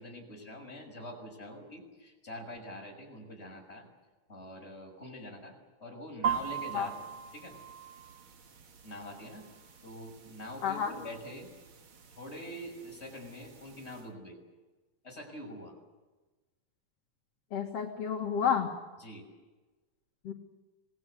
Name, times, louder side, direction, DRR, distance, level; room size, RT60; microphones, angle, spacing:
voice 1, 0.0-3.9 4.3-5.5 5.8-7.0 7.3-7.5 8.8-9.5 9.8-11.5 12.2-14.4 15.0-15.7 19.0-19.3, equal, 20° left, 0 dB, 6.3 m, -45 dB
sound 1, 6.2-14.0, right 7 dB, 50° right, 2.2 m, -41 dB
voice 2, 10.6-10.9 17.5-18.7 20.2-20.3, left 7 dB, 55° left, 1 dB, 2.6 m, -30 dB
26.5 x 19.5 x 8.4 m, 1.2 s
omnidirectional pair, 3.3 m